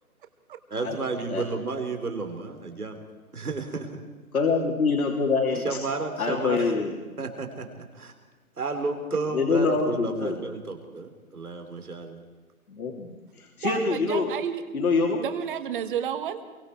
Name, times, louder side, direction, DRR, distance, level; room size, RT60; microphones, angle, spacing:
voice 1, 0.7-3.0 3.3-4.0 5.5-6.7 7.2-8.1 8.6-12.2, right 3 dB, 85° right, 5 dB, 3.4 m, -32 dB
voice 2, 4.3-5.8 6.2-6.9 9.3-10.4 12.7-13.1 13.4-14.3 14.7-15.2, left 4 dB, 75° left, 0 dB, 3.0 m, -25 dB
voice 3, 13.6-14.6 15.2-16.4, right 9 dB, 35° right, 9 dB, 1.7 m, -31 dB
24.5 x 23.0 x 4.7 m, 1.3 s
figure-of-eight pair, 145°, 43 cm